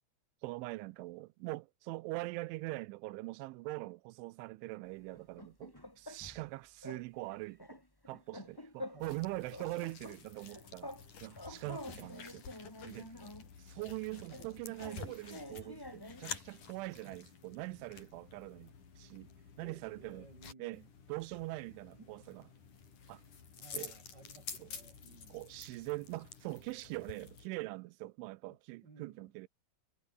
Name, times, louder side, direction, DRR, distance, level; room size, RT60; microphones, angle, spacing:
voice 1, 0.4-7.8 8.1-10.9 11.2-12.4 12.8-13.1 13.6-19.3 19.6-20.3 20.6-20.8 21.1-22.4 23.1-23.2 23.7-23.9 24.6-24.7 25.3-29.5, right 21 dB, 80° right, 3.0 m, -43 dB
sound 1, 5.1-6.5 6.8-7.0 7.3-9.2 9.5-11.1 11.3-13.5 14.3-16.3, left 1 dB, 5° left, 2.0 m, -48 dB
sound 2, 9.0-27.5, left 6 dB, 40° left, 5.0 m, -51 dB
voice 2, 11.7-12.1 13.8-13.9 14.3-14.7 17.0-17.2 19.6-20.9 22.0-22.1 23.6-25.4 28.5-29.3, right 3 dB, 30° right, 2.5 m, -57 dB
omnidirectional pair, 5.7 m